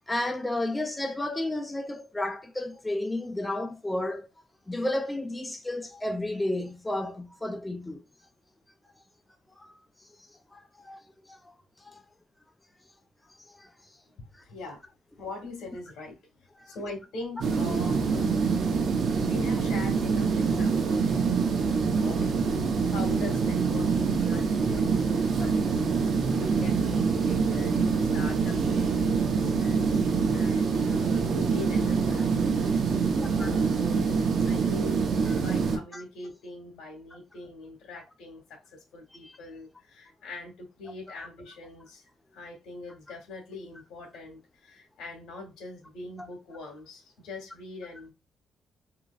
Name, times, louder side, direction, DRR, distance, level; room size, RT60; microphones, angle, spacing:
voice 1, 0.1-4.3 4.7-8.0 9.6-9.7 10.5-11.0 11.3-11.4 11.8-12.0 13.5-13.7 16.6-16.8 33.4-33.5 35.3-35.4 35.9-36.0 39.2-39.3 41.2-41.3, left 1 dB, 15° left, 0.5 m, -32 dB
voice 2, 14.2-14.8 15.2-18.5 19.2-26.0 26.4-32.4 32.8-35.1 35.4-48.1, left 2 dB, 80° left, 2.0 m, -43 dB
sound 1, 17.4-35.8, right 5 dB, 60° right, 0.9 m, -25 dB
3.8 x 3.0 x 2.5 m
cardioid pair, 90°, 0 cm